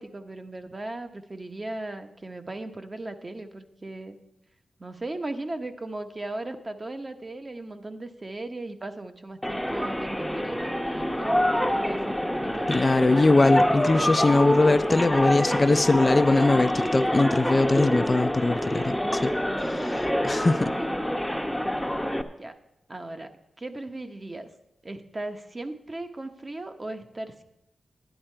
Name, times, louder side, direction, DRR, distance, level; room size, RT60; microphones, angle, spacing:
voice 1, 0.0-4.2 4.8-12.7 20.6-21.0 22.4-22.6 22.9-24.5 24.8-27.4, right 2 dB, 35° right, 7 dB, 1.0 m, -37 dB
sound 1, 9.4-22.2, equal, ahead, 0.8 m, -26 dB
voice 2, 12.7-19.3 19.6-20.7, left 2 dB, 30° left, 11 dB, 0.4 m, -21 dB
11.0 x 10.0 x 4.5 m, 0.86 s
cardioid pair, 70°, 0 cm